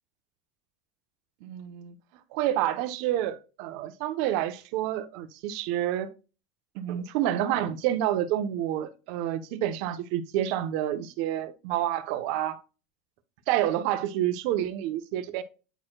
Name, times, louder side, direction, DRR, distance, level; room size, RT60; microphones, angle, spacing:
voice 1, 1.4-1.9 2.3-6.1 6.7-12.6 13.5-15.4, right 12 dB, 65° right, 0.9 m, -28 dB
9.2 x 4.4 x 2.3 m
supercardioid pair, 120°, 0 cm